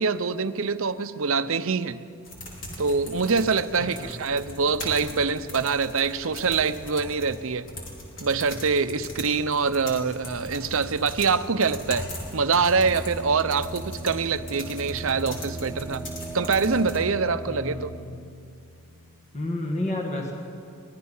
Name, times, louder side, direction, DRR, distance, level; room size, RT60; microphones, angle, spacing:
voice 1, 0.0-2.0 2.8-7.7 8.2-12.1 12.3-16.1 16.3-17.9, right 5 dB, 70° right, 12 dB, 0.7 m, -25 dB
sound 1, 2.2-17.0, left 1 dB, 55° left, 4.8 m, -39 dB
voice 2, 3.8-4.2 17.4-18.1 19.3-20.3, left 1 dB, 30° left, 0 dB, 1.8 m, -31 dB
sound 2, 12.7-19.3, right 2 dB, 5° left, 6.2 m, -38 dB
24.5 x 19.5 x 5.6 m, 2.4 s
head